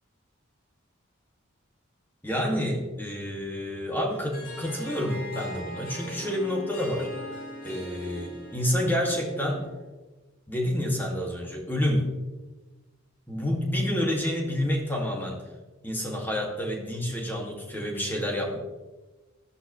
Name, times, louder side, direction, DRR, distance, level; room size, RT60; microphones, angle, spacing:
voice 1, 2.2-7.1 7.6-9.6 10.5-12.2 13.3-15.4 15.8-18.6, left 1 dB, 10° left, -1 dB, 2.2 m, -28 dB
Harp, 4.1-9.9, equal, 45° left, 3.5 m, -41 dB
15.5 x 11.5 x 3.2 m, 1.2 s
head